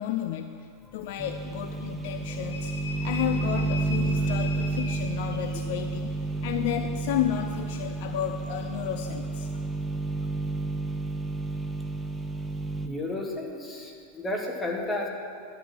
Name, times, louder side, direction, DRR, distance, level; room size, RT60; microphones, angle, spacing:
voice 1, 0.0-2.7 3.0-6.1 6.4-9.6, left 11 dB, 50° left, 7 dB, 0.3 m, -32 dB
sound 1, 1.2-12.9, right 3 dB, 10° right, 0.6 m, -31 dB
sound 2, 2.5-5.8, left 4 dB, 65° left, 1.0 m, -40 dB
voice 2, 12.8-15.1, left 2 dB, 15° left, 0 dB, 1.3 m, -32 dB
10.5 x 4.7 x 7.4 m, 2.4 s
figure-of-eight pair, 90°, 0 cm